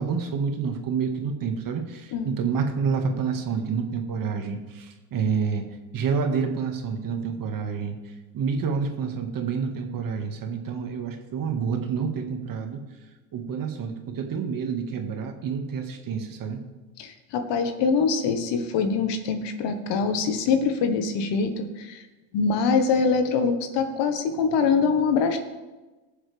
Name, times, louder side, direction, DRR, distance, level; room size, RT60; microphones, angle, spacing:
voice 1, 0.0-5.6 5.9-8.0 8.3-12.8 13.3-16.6, right 6 dB, 45° right, 4 dB, 1.9 m, -28 dB
voice 2, 17.0-22.0 22.3-25.4, left 5 dB, 60° left, 7 dB, 1.6 m, -24 dB
20.0 x 7.3 x 3.5 m, 1.2 s
supercardioid pair, 100°, 47 cm